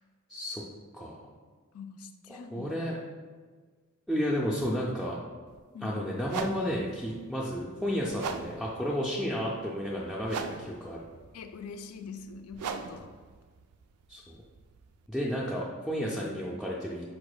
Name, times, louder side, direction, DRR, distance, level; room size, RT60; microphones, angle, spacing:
voice 1, 0.3-0.6 0.9-1.2 2.3-3.0 4.1-5.2 5.8-11.0 14.1-14.4 15.1-17.1, equal, ahead, -6 dB, 0.3 m, -32 dB
voice 2, 1.7-2.7 5.7-6.0 11.3-13.1, left 5 dB, 80° left, 8 dB, 0.4 m, -44 dB
sound 1, 5.5-5.6 6.2-15.1, right 5 dB, 85° right, 0.3 m, -41 dB
4.6 x 2.1 x 4.7 m, 1.5 s
head